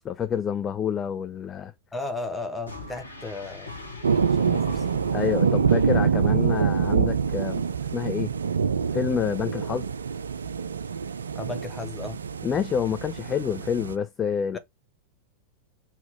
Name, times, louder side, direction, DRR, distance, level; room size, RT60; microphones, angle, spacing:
voice 1, 0.0-1.7 5.1-7.6 7.9-8.3 8.9-9.9 12.4-14.6, left 8 dB, 25° left, 0.4 m, -28 dB
voice 2, 1.9-3.7 4.1-4.9 11.3-12.2 14.5-14.6, left 3 dB, 10° left, 1.0 m, -35 dB
sound 1, 2.7-7.0, left 1 dB, 80° left, 1.1 m, -40 dB
sound 2, 4.0-14.0, right 6 dB, 70° right, 0.3 m, -25 dB
4.1 x 2.8 x 3.3 m
figure-of-eight pair, 90°, 0 cm